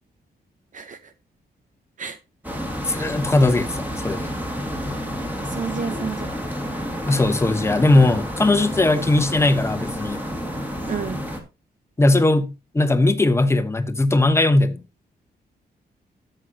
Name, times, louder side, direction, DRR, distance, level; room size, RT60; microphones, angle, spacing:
sound 1, 2.4-11.4, equal, 10° right, 2.1 m, -30 dB
voice 1, 2.8-4.3 7.1-10.2 12.0-14.8, left 2 dB, 15° left, 1.0 m, -19 dB
voice 2, 5.5-6.3 10.9-11.2, right 6 dB, 50° right, 0.8 m, -29 dB
12.5 x 7.8 x 2.8 m
wide cardioid pair, 125°, 17 cm